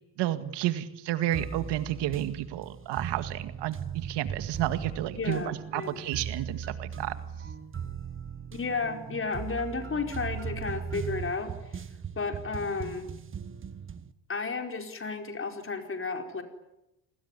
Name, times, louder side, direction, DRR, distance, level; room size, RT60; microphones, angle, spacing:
voice 1, 0.2-7.1, right 13 dB, 75° right, 11 dB, 2.0 m, -31 dB
sound 1, 1.3-14.1, right 7 dB, 30° right, 1.4 m, -38 dB
voice 2, 5.2-6.0 8.5-11.8 12.1-13.1 14.3-16.4, left 4 dB, 30° left, 5 dB, 4.8 m, -33 dB
28.0 x 20.5 x 9.9 m, 0.90 s
cardioid pair, 105°, 42 cm